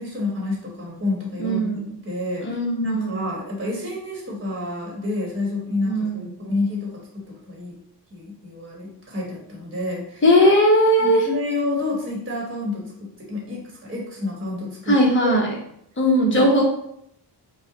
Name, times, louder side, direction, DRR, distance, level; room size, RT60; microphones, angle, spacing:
voice 1, 0.0-2.6 2.8-7.8 8.1-10.2 11.0-15.3 16.3-16.6, left 2 dB, 30° right, -3 dB, 1.3 m, -29 dB
voice 2, 1.4-1.9 2.4-3.3 5.9-6.3 10.2-11.3 14.9-15.5 16.0-16.6, equal, 30° left, -2 dB, 1.1 m, -18 dB
5.3 x 2.3 x 3.9 m, 0.72 s
wide cardioid pair, 150°, 41 cm